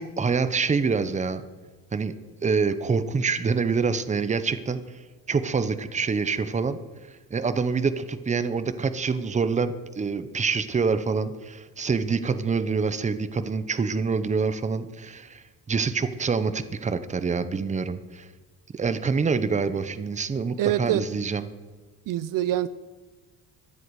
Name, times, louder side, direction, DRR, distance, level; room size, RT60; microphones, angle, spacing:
voice 1, 0.0-1.4 1.9-2.1 2.4-4.8 5.3-6.8 7.3-18.3 18.7-21.5, right 5 dB, 20° right, 12 dB, 0.8 m, -26 dB
voice 2, 20.6-21.0 22.1-22.7, right 12 dB, 65° right, 16 dB, 0.6 m, -24 dB
23.5 x 7.9 x 4.8 m, 1.3 s
cardioid pair, 125°, 35 cm